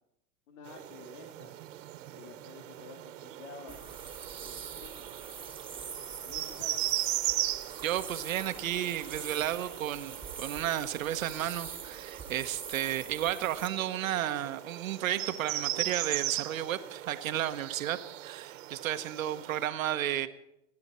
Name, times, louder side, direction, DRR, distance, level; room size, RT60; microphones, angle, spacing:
voice 1, 0.5-1.7 2.1-3.8 4.4-5.1 6.2-6.8, left 5 dB, 75° left, 3 dB, 2.7 m, -50 dB
sound 1, 0.7-19.7, right 14 dB, 70° right, 1.5 m, -38 dB
sound 2, 3.7-13.7, right 6 dB, 15° right, 1.5 m, -44 dB
voice 2, 7.8-20.3, right 11 dB, 90° right, 9 dB, 1.2 m, -33 dB
Gunshot gunfire, 8.3-9.5, left 4 dB, 40° left, 3.7 m, -59 dB
30.0 x 11.0 x 4.3 m, 0.85 s
supercardioid pair, 130°, 39 cm